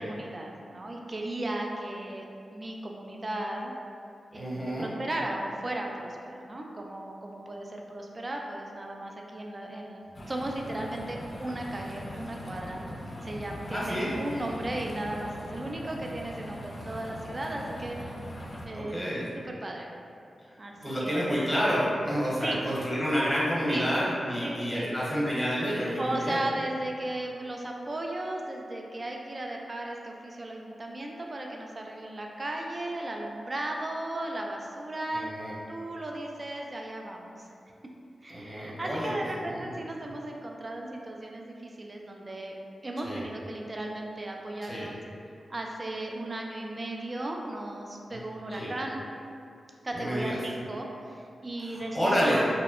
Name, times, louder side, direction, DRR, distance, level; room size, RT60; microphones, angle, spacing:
voice 1, 0.0-2.3 2.5-3.7 4.3-12.8 13.2-18.2 18.7-19.0 19.5-19.9 20.6-20.7 21.0-21.3 22.4-22.6 23.7-23.9 24.4-25.0 26.0-35.3 35.7-37.5 38.2-42.5 42.8-44.9 45.5-49.0 49.8-52.5, right 1 dB, 40° right, 0 dB, 0.3 m, -36 dB
voice 2, 4.3-4.9 13.7-14.1 18.7-19.3 20.8-26.4 35.1-35.5 38.3-39.1 39.6-39.7 43.0-43.2 44.6-44.9 48.5-48.7 49.9-50.4 51.6-52.4, equal, 10° left, -7 dB, 0.8 m, -29 dB
sound 1, 10.1-18.7, equal, 50° left, 0.4 m, -40 dB
2.6 x 2.1 x 2.4 m, 2.5 s
cardioid pair, 55°, 0 cm